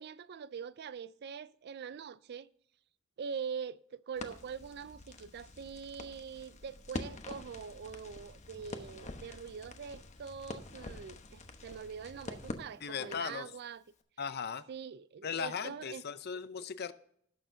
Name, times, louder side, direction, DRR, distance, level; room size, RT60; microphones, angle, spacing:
voice 1, 0.0-2.5 3.2-13.8 14.7-16.0, right 6 dB, 55° right, 0.4 m, -43 dB
Crackle, 4.2-13.4, left 2 dB, 35° left, 1.0 m, -46 dB
voice 2, 12.8-13.5 14.2-14.6 15.2-16.9, left 6 dB, 50° left, 0.6 m, -38 dB
17.5 x 6.7 x 2.7 m
head